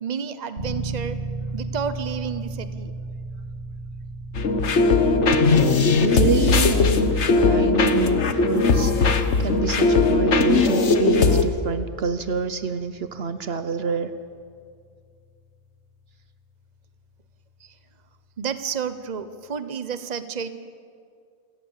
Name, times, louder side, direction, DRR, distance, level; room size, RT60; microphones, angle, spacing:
voice 1, 0.0-1.2 1.5-2.9 18.4-20.5, right 7 dB, 40° right, 11 dB, 1.0 m, -30 dB
sound 1, 0.6-17.3, right 2 dB, 85° right, 2.8 m, -38 dB
sound 2, 4.3-11.4, left 4 dB, 90° left, 1.5 m, -19 dB
voice 2, 6.0-14.1, right 6 dB, 65° right, 11 dB, 1.1 m, -27 dB
28.0 x 17.0 x 7.4 m, 2.2 s
omnidirectional pair, 1.1 m